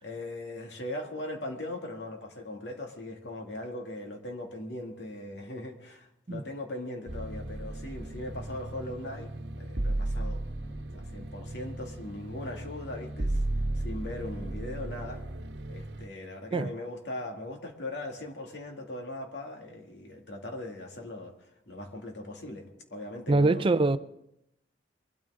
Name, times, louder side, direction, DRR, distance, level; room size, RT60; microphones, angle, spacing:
voice 1, 0.0-9.3 9.6-10.4 10.9-13.4 13.7-15.2 15.7-22.7 22.9-23.6, left 1 dB, 80° left, 2.4 m, -39 dB
sound 1, 7.1-16.1, right 1 dB, 75° right, 1.1 m, -35 dB
voice 2, 23.3-24.0, right 2 dB, 30° right, 0.4 m, -23 dB
23.0 x 13.0 x 3.7 m
head